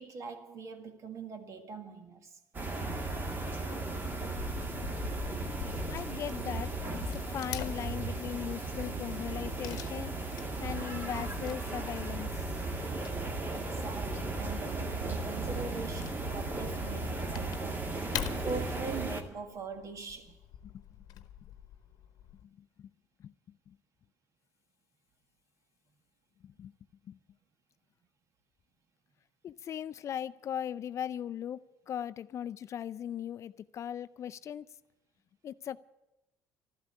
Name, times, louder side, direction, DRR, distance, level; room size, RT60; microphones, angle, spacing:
voice 1, 0.0-2.4 13.5-17.9 18.4-20.4, right 4 dB, 50° right, 1.8 m, -42 dB
sound 1, 2.5-19.2, right 2 dB, 30° right, 1.9 m, -36 dB
Wood / Tearing, 2.8-22.4, left 11 dB, 75° left, 0.9 m, -46 dB
voice 2, 5.9-10.1 10.6-12.5 20.6-20.7 21.2-21.3 22.4-22.5 22.8-22.9 23.2-23.3 23.7-23.8 26.4-26.7 27.1-27.2 29.4-31.6 31.9-34.7 35.4-35.8, left 9 dB, 45° left, 0.4 m, -39 dB
13.0 x 12.0 x 8.2 m
cardioid pair, 100°, 7 cm